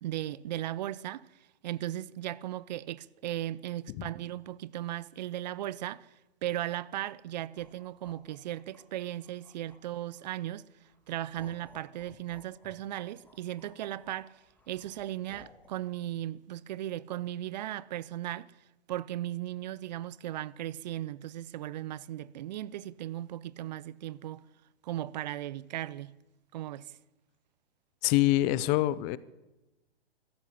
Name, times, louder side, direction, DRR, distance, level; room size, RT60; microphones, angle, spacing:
voice 1, 0.0-1.3 1.6-6.1 6.4-10.7 11.1-14.4 14.7-18.5 18.9-24.4 24.8-26.1 26.5-27.0, right 13 dB, 45° right, 0.7 m, -37 dB
sound 1, 7.4-10.4 10.9-15.7, left 2 dB, 5° left, 3.0 m, -58 dB
voice 2, 28.0-29.2, left 16 dB, 25° left, 0.6 m, -25 dB
21.0 x 15.0 x 8.5 m
hypercardioid pair, 125°, 32 cm